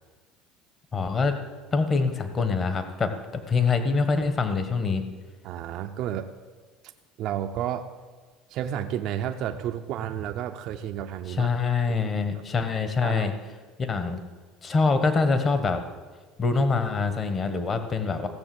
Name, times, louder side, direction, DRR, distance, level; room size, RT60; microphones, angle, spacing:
voice 1, 0.9-1.4 1.7-5.0 11.3-13.3 13.8-14.2 14.6-15.8 16.4-18.3, left 4 dB, 30° left, 8 dB, 1.3 m, -25 dB
voice 2, 5.4-6.3 7.2-7.9 8.5-11.5 12.3-12.4 13.0-13.3, right 10 dB, 60° right, 6 dB, 0.6 m, -31 dB
15.5 x 6.7 x 7.9 m, 1.4 s
supercardioid pair, 120°, 0 cm